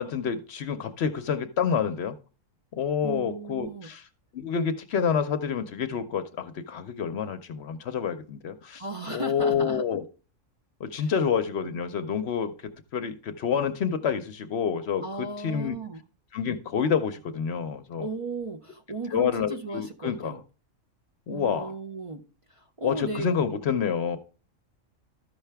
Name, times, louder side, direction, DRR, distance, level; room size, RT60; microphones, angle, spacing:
voice 1, 0.0-2.2 2.7-4.0 4.3-8.8 9.1-10.0 10.8-12.5 12.9-15.8 16.3-18.1 19.1-20.4 21.3-21.7 22.8-24.2, left 7 dB, 60° left, 0.8 m, -28 dB
voice 2, 3.0-3.9 8.8-9.8 11.0-11.1 15.0-16.0 18.0-20.4 21.3-23.4, right 3 dB, 50° right, 0.4 m, -36 dB
13.0 x 5.6 x 3.3 m
omnidirectional pair, 1.3 m